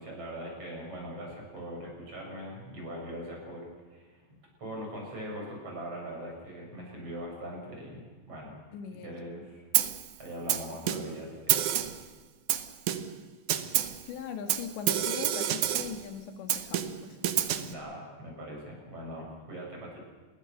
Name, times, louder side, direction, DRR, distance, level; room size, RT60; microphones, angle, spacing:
voice 1, 0.0-3.6 3.9-4.2 4.6-8.5 8.9-9.6 10.2-11.6 17.6-20.0, equal, 35° right, -1 dB, 8.4 m, -41 dB
voice 2, 8.7-9.2 10.9-11.0 14.0-17.2, left 6 dB, 85° left, 6 dB, 4.3 m, -40 dB
Snare drum, 9.7-10.1 10.5-11.2 11.5-12.1 12.5-13.2 13.5-14.0 14.5-16.0 16.5-17.7, right 11 dB, 70° right, 1.9 m, -28 dB
27.5 x 21.0 x 6.7 m, 1.4 s
omnidirectional pair, 5.0 m